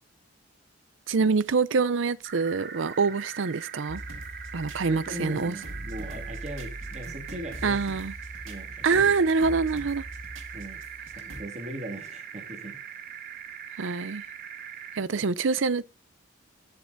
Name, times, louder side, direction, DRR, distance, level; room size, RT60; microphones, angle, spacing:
voice 1, 1.1-4.0 4.5-5.5 7.6-8.1 8.8-10.0 13.8-14.2 14.9-15.8, right 4 dB, 70° right, 0.6 m, -25 dB
sound 1, 2.2-15.0, right 8 dB, 50° right, 1.2 m, -41 dB
sound 2, 3.9-11.4, right 1 dB, 90° right, 2.2 m, -41 dB
voice 2, 4.9-7.8 8.4-9.1 10.5-10.8 11.1-12.8 15.1-15.2, equal, 35° right, 2.2 m, -39 dB
19.0 x 7.7 x 2.6 m
head